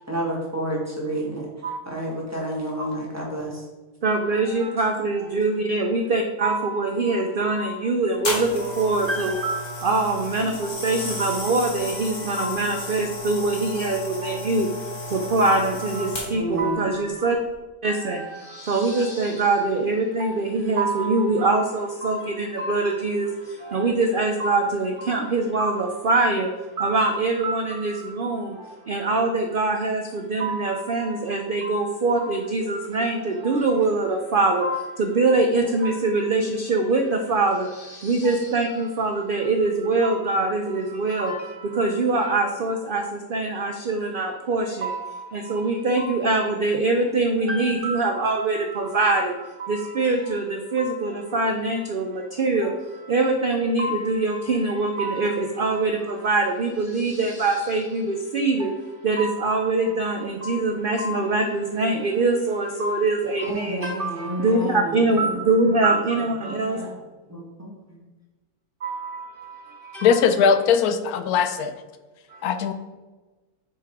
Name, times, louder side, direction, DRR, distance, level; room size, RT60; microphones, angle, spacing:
voice 1, 0.1-1.5 1.8-3.6 16.3-16.9 63.4-65.7 66.4-66.9 67.3-68.0, right 1 dB, 10° right, -4 dB, 1.6 m, -30 dB
voice 2, 4.0-17.4 17.8-66.8 68.8-70.2 72.3-72.5, right 3 dB, 60° right, 4 dB, 0.5 m, -24 dB
sound 1, 8.2-16.6 17.3-17.5, left 1 dB, 55° left, 2.1 m, -33 dB
voice 3, 70.0-71.7 72.4-72.7, left 6 dB, 80° left, 10 dB, 1.1 m, -20 dB
6.9 x 4.7 x 4.7 m, 1.2 s
omnidirectional pair, 1.6 m